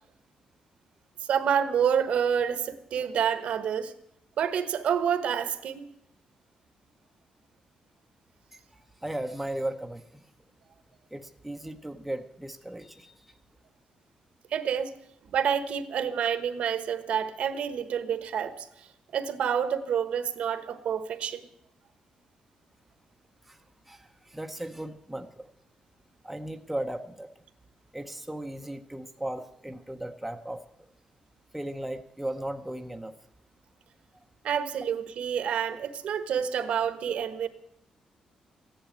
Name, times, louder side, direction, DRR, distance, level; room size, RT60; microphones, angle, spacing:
voice 1, 1.3-3.9 4.4-5.9 14.5-14.9 15.3-18.7 19.1-21.4 34.4-37.5, right 8 dB, 65° right, 11 dB, 1.2 m, -28 dB
voice 2, 8.7-10.2 11.1-13.2 23.5-23.6 23.9-25.5 26.2-27.3 27.9-30.6 31.5-33.1, right 1 dB, 5° right, 4 dB, 0.8 m, -36 dB
15.0 x 10.5 x 9.0 m, 0.77 s
wide cardioid pair, 165°, 2 cm